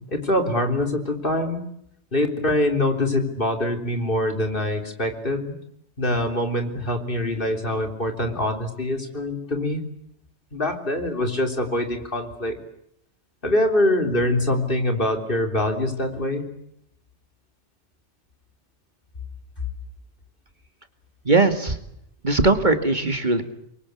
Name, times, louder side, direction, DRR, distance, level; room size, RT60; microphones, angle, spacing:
voice 1, 0.0-1.6 2.1-5.5 6.0-9.8 10.5-12.6 13.4-16.4, left 1 dB, 50° left, 5 dB, 3.9 m, -24 dB
voice 2, 21.3-21.8 22.2-23.4, right 3 dB, 40° right, 7 dB, 2.3 m, -19 dB
28.5 x 24.0 x 8.4 m, 0.74 s
omnidirectional pair, 1.2 m